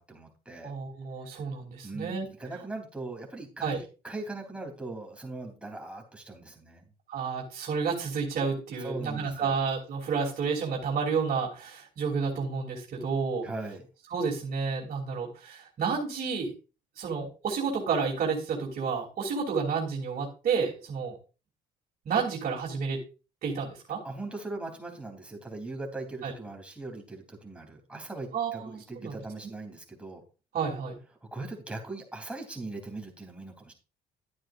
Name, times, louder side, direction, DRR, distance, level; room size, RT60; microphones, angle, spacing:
voice 1, 0.0-0.7 1.8-6.9 8.8-9.6 13.4-13.9 24.0-30.2 31.3-33.7, right 2 dB, 5° right, 1 dB, 3.3 m, -40 dB
voice 2, 0.6-2.2 3.6-3.8 7.1-13.5 14.1-16.5 17.0-21.2 22.0-23.0 23.4-24.0 26.2-26.3 28.3-29.1 30.5-31.0, right 5 dB, 50° right, -4 dB, 3.0 m, -30 dB
11.5 x 9.0 x 2.5 m, 0.33 s
cardioid pair, 110°, 17 cm